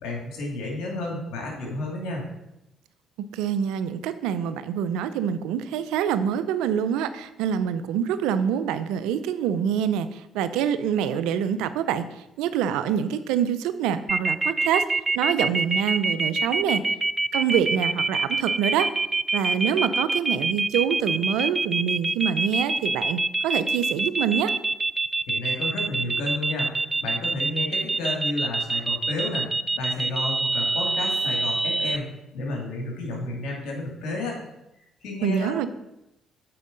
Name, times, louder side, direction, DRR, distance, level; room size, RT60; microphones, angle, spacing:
voice 1, 0.0-2.2 25.3-26.7 27.0-29.5 29.7-32.1 32.3-34.4 35.0-35.7, left 2 dB, 75° left, -1 dB, 2.4 m, -31 dB
voice 2, 3.3-14.8 15.1-16.8 17.3-18.9 19.3-24.5 35.2-35.7, right 9 dB, 85° right, 12 dB, 0.5 m, -26 dB
sound 1, 14.1-32.0, right 3 dB, 25° right, 0.3 m, -25 dB
7.7 x 4.6 x 5.1 m, 0.89 s
supercardioid pair, 60°, 0 cm